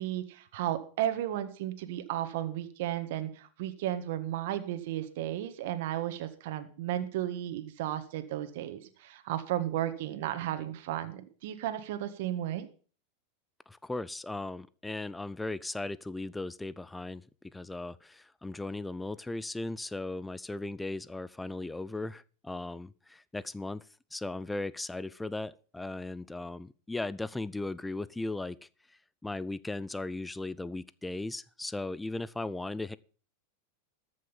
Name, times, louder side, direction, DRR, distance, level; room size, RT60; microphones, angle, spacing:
voice 1, 0.0-12.7, right 12 dB, 65° right, 1.7 m, -34 dB
voice 2, 13.7-17.2 17.5-23.8 24.1-33.0, left 2 dB, 10° left, 0.5 m, -37 dB
14.0 x 6.3 x 7.2 m
hypercardioid pair, 120°, 0 cm